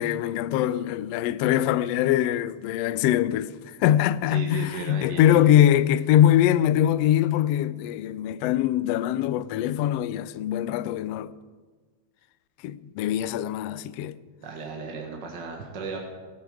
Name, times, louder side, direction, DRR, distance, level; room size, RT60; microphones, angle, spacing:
voice 1, 0.0-11.3 12.6-14.2, left 11 dB, 85° left, 1.4 m, -23 dB
voice 2, 4.3-5.6 14.4-16.0, right 4 dB, 45° right, 1.6 m, -35 dB
18.5 x 11.5 x 4.9 m
omnidirectional pair, 3.4 m